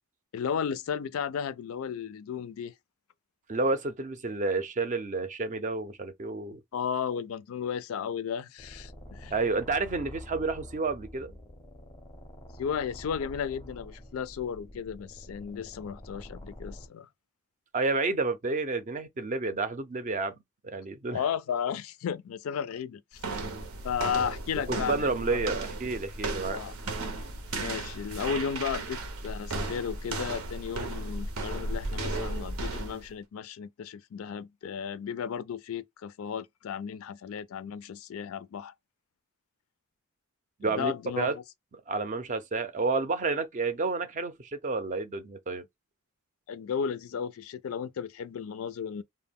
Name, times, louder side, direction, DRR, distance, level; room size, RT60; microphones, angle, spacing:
voice 1, 0.3-2.7 6.7-9.3 12.6-17.1 21.1-23.2 23.8-25.4 26.5-26.7 27.6-38.7 40.7-41.4 46.5-49.0, left 7 dB, 80° left, 0.4 m, -34 dB
voice 2, 3.5-6.6 9.3-11.4 17.7-20.4 20.6-21.2 24.7-26.6 40.6-41.3 41.9-45.7, right 3 dB, 35° right, 0.5 m, -30 dB
sound 1, 8.6-16.9, left 1 dB, 20° left, 0.5 m, -47 dB
sound 2, 23.2-33.1, right 2 dB, 85° right, 0.7 m, -35 dB
2.2 x 2.1 x 3.4 m
head